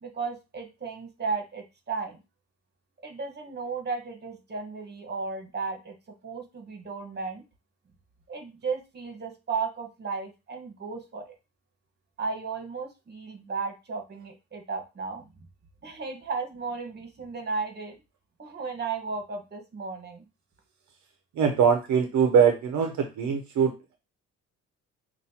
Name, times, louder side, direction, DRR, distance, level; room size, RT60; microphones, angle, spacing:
voice 1, 0.0-2.2 3.0-5.9 6.2-7.4 8.3-11.3 12.2-15.3 15.8-17.9 18.4-20.3, right 4 dB, 35° right, 4 dB, 1.3 m, -34 dB
voice 2, 21.4-24.0, right 7 dB, 70° right, 4 dB, 0.8 m, -22 dB
5.5 x 2.6 x 2.8 m, 0.27 s
cardioid pair, 90°, 30 cm